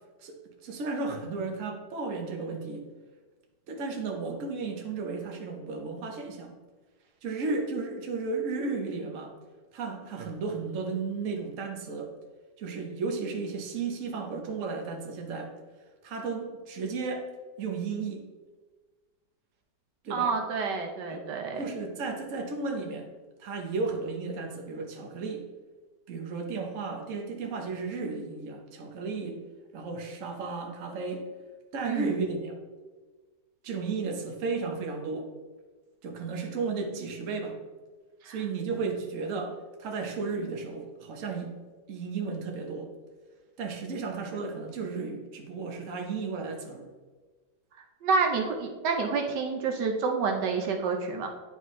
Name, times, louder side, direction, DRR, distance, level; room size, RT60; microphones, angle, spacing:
voice 1, 0.6-2.8 3.7-6.5 7.2-9.3 9.7-12.1 12.6-15.5 16.0-17.3 17.6-18.2 20.0-20.3 21.1-21.2 21.6-23.1 23.4-25.4 26.1-29.4 29.7-31.2 31.7-32.5 33.6-35.3 36.0-37.6 38.2-41.5 41.9-42.9 43.6-46.9, right 4 dB, 50° right, 2 dB, 1.2 m, -34 dB
voice 2, 20.1-21.7 31.8-32.1 38.2-38.4 48.0-51.3, right 4 dB, 80° right, 3 dB, 1.4 m, -28 dB
9.4 x 5.4 x 3.2 m, 1.3 s
omnidirectional pair, 1.9 m